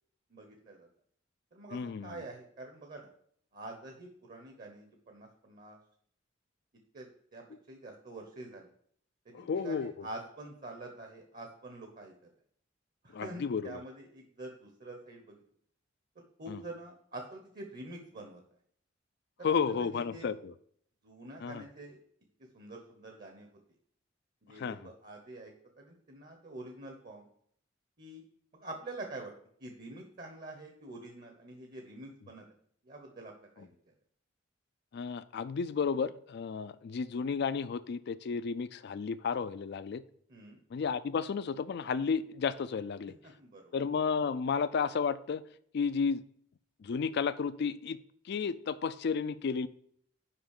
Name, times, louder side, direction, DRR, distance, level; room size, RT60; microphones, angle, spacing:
voice 1, 0.3-0.9 1.5-3.1 3.5-5.8 6.9-8.7 9.2-12.1 13.0-15.4 16.2-18.4 19.4-20.3 21.0-22.0 22.5-23.5 24.4-25.5 25.8-27.3 28.0-28.2 28.5-29.3 29.6-32.4 32.8-33.8 40.3-40.6 43.2-43.7, right 2 dB, 45° right, 3 dB, 1.0 m, -46 dB
voice 2, 1.7-2.2 9.3-9.9 13.1-13.8 16.5-16.6 19.4-20.5 21.4-21.6 24.6-24.8 34.9-40.0 40.7-43.1 43.7-45.4 45.7-46.2 46.8-48.0 48.3-49.7, left 5 dB, 60° left, 14 dB, 0.4 m, -32 dB
5.8 x 5.2 x 6.6 m, 0.64 s
head